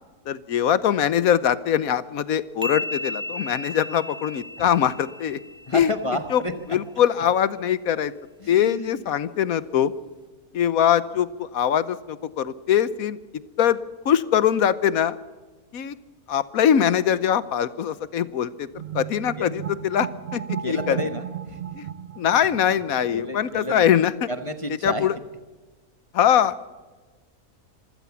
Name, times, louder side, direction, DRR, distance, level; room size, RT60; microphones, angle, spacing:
voice 1, 0.3-5.4 5.7-5.9 6.3-6.4 6.7-8.1 8.5-9.9 10.5-13.2 13.6-13.8 14.0-15.2 15.7-16.0 16.3-18.7 18.9-21.0 21.7-21.9 22.2-24.3 24.8-25.2 26.1-26.6, left 9 dB, 70° left, 16 dB, 1.3 m, -22 dB
sound 1, 2.6-6.2, left 2 dB, 5° right, 0.6 m, -34 dB
voice 2, 5.7-6.5 8.4-8.9 19.4-19.5 20.6-21.6 23.1-23.9 24.3-25.1, left 1 dB, 25° left, 7 dB, 1.0 m, -30 dB
sound 2, 18.7-24.0, right 10 dB, 55° right, 0.9 m, -35 dB
25.5 x 15.5 x 7.1 m, 1.3 s
omnidirectional pair, 1.6 m